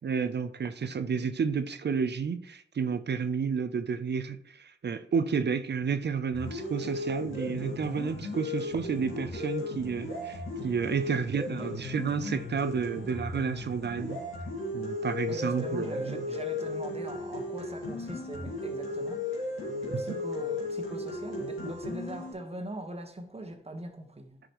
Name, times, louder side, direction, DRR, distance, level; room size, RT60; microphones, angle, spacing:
voice 1, 0.0-14.2 14.7-16.2 19.7-20.2, right 6 dB, 60° right, 0.6 m, -31 dB
sound 1, 6.3-22.3, left 2 dB, 85° left, 2.2 m, -36 dB
voice 2, 15.3-24.4, right 1 dB, 30° right, 1.3 m, -41 dB
9.9 x 5.0 x 3.1 m
cardioid pair, 60°, 20 cm